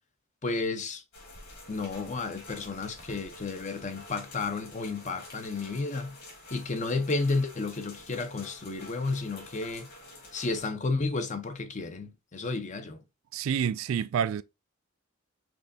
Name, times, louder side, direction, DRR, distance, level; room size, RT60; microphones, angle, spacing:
voice 1, 0.4-1.0 1.7-6.2 6.5-9.9 10.3-13.0, left 3 dB, 35° left, 0.7 m, -32 dB
sound 1, 1.1-10.7, left 2 dB, 55° left, 2.3 m, -48 dB
voice 2, 13.3-14.4, right 8 dB, 80° right, 0.3 m, -28 dB
6.1 x 3.3 x 2.6 m
head